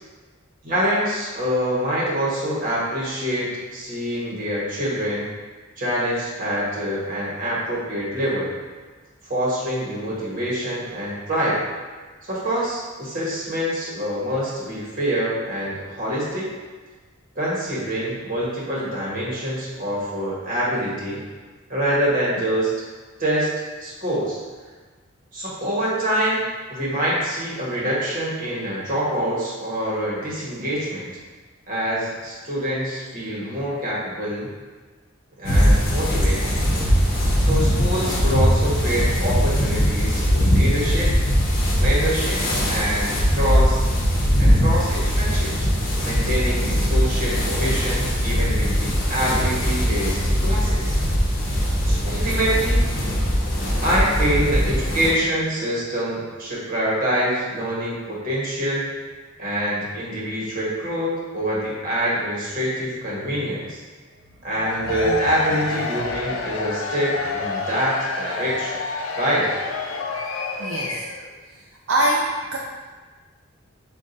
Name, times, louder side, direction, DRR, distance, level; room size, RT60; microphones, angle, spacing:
voice 1, 0.6-5.3 5.8-8.5 9.2-11.6 12.3-16.5 17.3-21.2 21.7-22.7 23.2-23.5 23.8-24.4 25.3-26.4 26.7-31.1 31.7-34.5 35.4-36.6 37.4-41.1 41.7-42.4 42.7-43.8 44.4-45.7 46.0-51.0 51.8-52.9 53.8-58.9 59.4-63.8 64.4-68.8 69.2-69.6, equal, 45° right, -6 dB, 1.3 m, -25 dB
sound 1, 35.4-55.1, equal, 50° left, 0.9 m, -20 dB
Cheering / Crowd, 64.6-71.3, left 4 dB, 80° left, 0.4 m, -29 dB
voice 2, 70.6-71.0 71.9-72.6, right 1 dB, 70° right, -3 dB, 0.5 m, -23 dB
7.1 x 2.4 x 2.6 m, 1.4 s
head